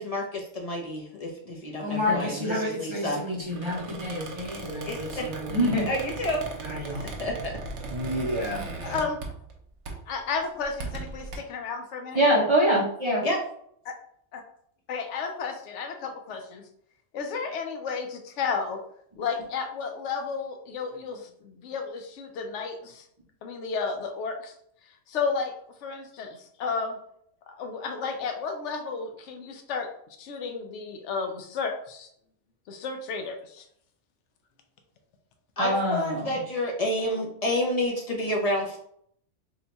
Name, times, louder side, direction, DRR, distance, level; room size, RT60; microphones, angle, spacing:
voice 1, 0.0-3.2 4.9-5.3 5.9-6.4 7.0-7.5 13.2-13.4 35.6-38.8, left 1 dB, 50° left, 0 dB, 0.5 m, -29 dB
voice 2, 1.8-5.9 6.6-7.1 7.9-8.9 12.1-13.3 35.6-36.4, equal, 35° right, -3 dB, 0.5 m, -27 dB
Squeak, 3.5-9.6 9.9-10.1 10.6-11.4, right 3 dB, 75° right, 1.0 m, -38 dB
voice 3, 8.8-9.2 10.1-12.2 14.9-16.6 17.1-18.8 19.2-23.0 23.4-24.5 25.1-25.5 25.8-27.0 27.5-29.9 30.2-32.1 32.7-33.6, left 5 dB, 80° left, 5 dB, 0.9 m, -32 dB
2.8 x 2.2 x 3.9 m, 0.68 s
omnidirectional pair, 1.2 m